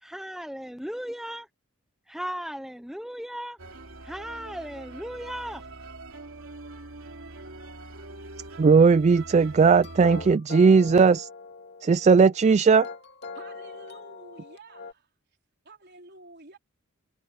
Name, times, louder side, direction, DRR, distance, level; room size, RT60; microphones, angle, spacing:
voice 1, 0.0-1.5 2.1-3.6 4.0-5.6, equal, ahead, 0.8 m, -36 dB
sound 1, 3.6-10.4, right 2 dB, 70° right, 3.1 m, -43 dB
voice 2, 8.6-11.3 11.8-12.9, right 5 dB, 30° right, 0.3 m, -18 dB
sound 2, 9.6-14.9, left 4 dB, 50° left, 2.2 m, -42 dB
voice 3, 13.3-15.1 15.6-16.6, right 2 dB, 50° right, 4.2 m, -49 dB
head